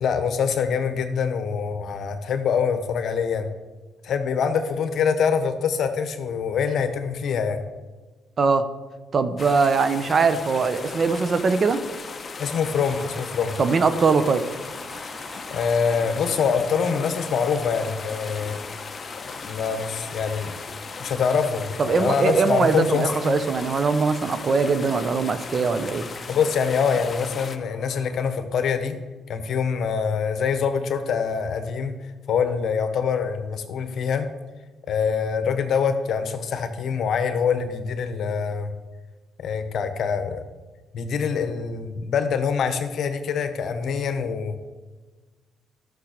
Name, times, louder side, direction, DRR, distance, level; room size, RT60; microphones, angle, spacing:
voice 1, 0.0-3.5 4.0-7.6 12.4-13.6 15.5-18.6 19.2-20.5 21.0-23.4 26.3-28.9 29.3-31.9 32.3-34.3 34.9-38.7 39.4-40.4 40.9-44.7, left 6 dB, 65° left, 8 dB, 1.2 m, -25 dB
voice 2, 8.4-8.7 9.1-11.8 13.6-14.4 21.8-26.1, right 4 dB, 45° right, 11 dB, 1.0 m, -21 dB
sound 1, 9.4-27.6, left 4 dB, 35° left, 1.0 m, -37 dB
sound 2, 12.4-28.4, left 1 dB, 5° right, 2.7 m, -47 dB
13.0 x 6.6 x 6.6 m, 1.3 s
cardioid pair, 90°, 0 cm